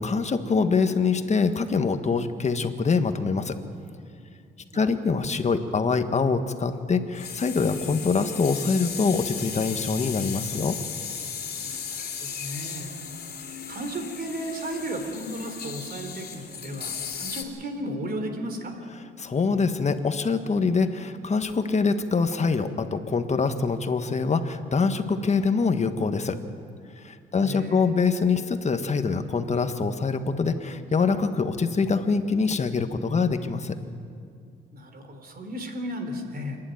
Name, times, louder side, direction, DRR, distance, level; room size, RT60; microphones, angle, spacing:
voice 1, 0.0-3.6 4.7-10.8 19.2-26.4 27.0-33.7, left 4 dB, 35° left, 8 dB, 1.5 m, -24 dB
sound 1, 7.1-17.4, left 6 dB, 50° left, 2.9 m, -36 dB
voice 2, 12.2-12.9 13.7-18.8 27.4-27.9 34.7-36.6, equal, 50° right, 6 dB, 3.6 m, -34 dB
27.5 x 11.5 x 9.3 m, 2.3 s
cardioid pair, 90°, 20 cm